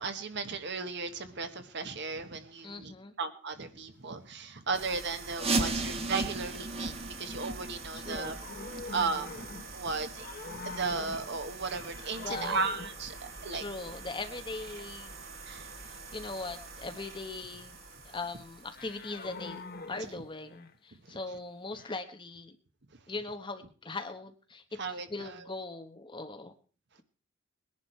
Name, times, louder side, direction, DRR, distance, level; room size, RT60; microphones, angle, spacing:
voice 1, 0.0-2.9 3.2-6.9 7.2-8.4 8.9-9.3 9.7-10.3 10.6-13.6 15.5-15.7 21.1-21.2 24.8-25.5, right 4 dB, 55° right, 8 dB, 1.4 m, -35 dB
voice 2, 2.6-3.1 7.9-8.4 12.2-12.6 13.5-15.1 15.8-17.8 18.0-19.6 19.9-22.6 23.1-26.5, left 3 dB, 25° left, 6 dB, 1.2 m, -40 dB
sound 1, 4.7-20.1, right 4 dB, 75° right, 6.7 m, -47 dB
sound 2, 5.3-10.9 11.3-11.4 11.9-12.0 12.6-12.7 13.3-13.4, right 2 dB, 30° right, 1.6 m, -36 dB
sound 3, 8.2-9.9 10.1-11.4 11.7-13.1 18.7-20.7 21.8-22.0, left 3 dB, 45° left, 1.2 m, -44 dB
20.5 x 10.5 x 4.5 m, 0.40 s
head